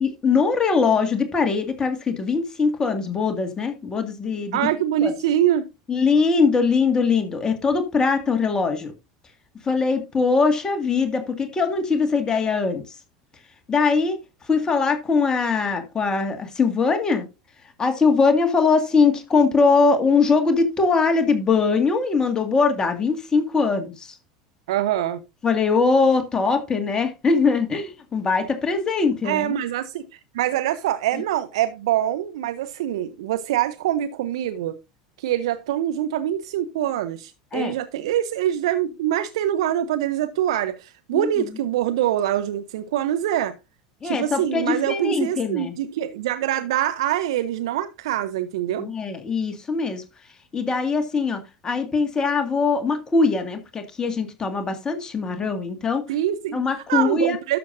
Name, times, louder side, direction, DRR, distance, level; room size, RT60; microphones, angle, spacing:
voice 1, 0.0-4.6 5.0-5.1 5.9-8.9 9.6-13.0 13.7-17.2 17.8-24.2 25.4-29.6 37.5-37.7 41.1-41.6 44.0-45.7 48.8-50.0 50.5-56.1 56.5-57.4, left 4 dB, 25° left, 1.9 m, -21 dB
voice 2, 4.5-5.7 24.7-25.2 29.2-34.8 35.2-43.6 44.0-48.9 56.1-56.6 56.9-57.6, right 11 dB, 70° right, 0.6 m, -24 dB
12.5 x 6.9 x 2.6 m
hypercardioid pair, 80°, 3 cm